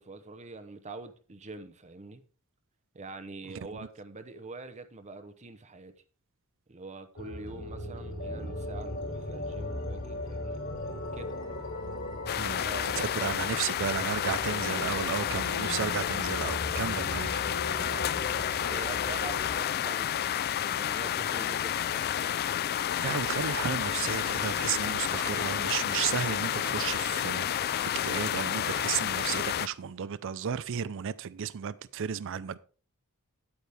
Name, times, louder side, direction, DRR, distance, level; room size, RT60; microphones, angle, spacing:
voice 1, 0.0-2.2 2.9-5.9 6.7-10.6 11.1-11.4 12.4-13.4 17.8-18.1 18.7-20.3 20.7-22.1, right 3 dB, 30° right, 0.8 m, -44 dB
sound 1, 7.2-19.6, left 1 dB, 60° left, 3.9 m, -37 dB
sound 2, 12.3-29.7, left 10 dB, 45° left, 0.3 m, -30 dB
voice 2, 12.3-12.7 13.0-17.8 23.0-32.6, right 8 dB, 60° right, 0.5 m, -33 dB
10.0 x 8.7 x 3.4 m
head